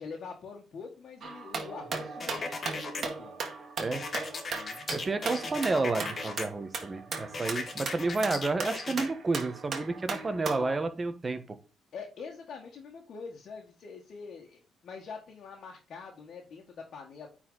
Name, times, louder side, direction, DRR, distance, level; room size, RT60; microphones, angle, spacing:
voice 1, 0.0-3.4 4.5-4.9 11.9-17.3, left 5 dB, 60° left, -1 dB, 1.8 m, -44 dB
sound 1, 1.2-10.8, right 4 dB, 50° right, 2.0 m, -38 dB
sound 2, 2.2-3.0 3.9-6.4 7.3-9.1, left 4 dB, 40° left, 1.6 m, -37 dB
voice 2, 4.9-11.6, right 3 dB, 30° right, 9 dB, 1.3 m, -30 dB
9.3 x 4.5 x 4.0 m, 0.35 s
cardioid pair, 90°, 0 cm